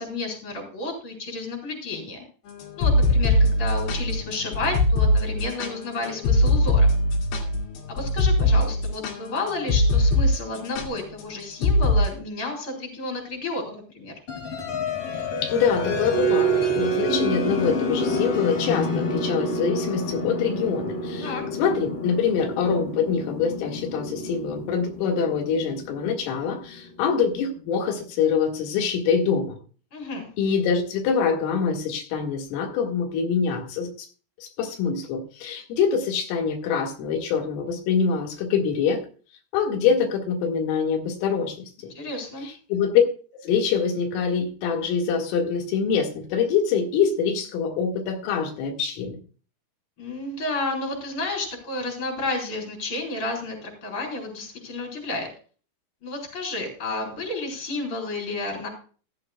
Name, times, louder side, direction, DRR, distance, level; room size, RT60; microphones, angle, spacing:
voice 1, 0.0-2.2 2.8-6.9 7.9-14.1 21.2-21.4 29.9-30.3 41.9-42.5 50.0-55.3 56.0-58.7, left 2 dB, 25° left, 2 dB, 5.1 m, -31 dB
sound 1, 2.6-10.3 10.6-10.9 11.6-12.0, left 1 dB, 65° left, 4.3 m, -21 dB
sound 2, 14.3-26.8, right 1 dB, 40° left, 2.3 m, -28 dB
voice 2, 15.4-29.6 30.4-33.9 34.4-39.0 39.5-41.9 42.4-43.0 43.4-49.2, left 6 dB, 90° left, 2 dB, 4.5 m, -25 dB
15.5 x 13.5 x 2.3 m, 0.39 s
omnidirectional pair, 5.7 m